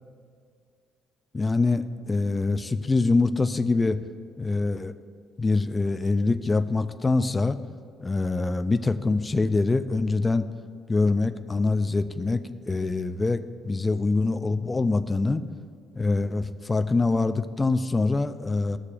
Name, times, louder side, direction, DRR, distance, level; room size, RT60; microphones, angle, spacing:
voice 1, 1.3-4.0 4.4-4.9 5.4-7.6 8.0-10.5 10.9-12.4 12.7-15.4 15.9-18.8, left 3 dB, 15° left, 9 dB, 0.4 m, -24 dB
17.0 x 6.6 x 2.5 m, 2.2 s
cardioid pair, 145°, 0 cm